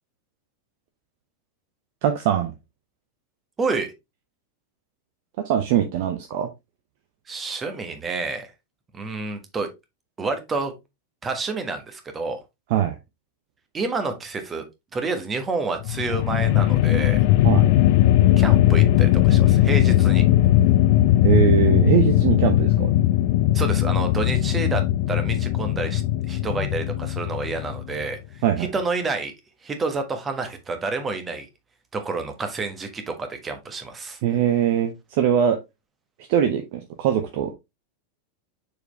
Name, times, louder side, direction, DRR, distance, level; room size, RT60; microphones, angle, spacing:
voice 1, 2.0-2.5 5.4-6.5 12.7-12.9 17.4-17.7 21.2-22.9 28.4-28.7 34.2-35.6 36.3-37.5, right 10 dB, 50° right, 0.7 m, -21 dB
voice 2, 3.6-3.9 7.3-8.5 8.9-9.7 10.2-10.7 11.2-12.4 13.7-14.6 14.9-17.2 18.4-20.2 23.5-24.8 25.1-28.2 28.6-29.3 29.6-31.5 31.9-34.2, right 4 dB, 20° right, 1.4 m, -29 dB
sound 1, 15.8-28.1, left 14 dB, 50° left, 0.4 m, -19 dB
6.7 x 4.6 x 3.2 m
figure-of-eight pair, 90°, 0 cm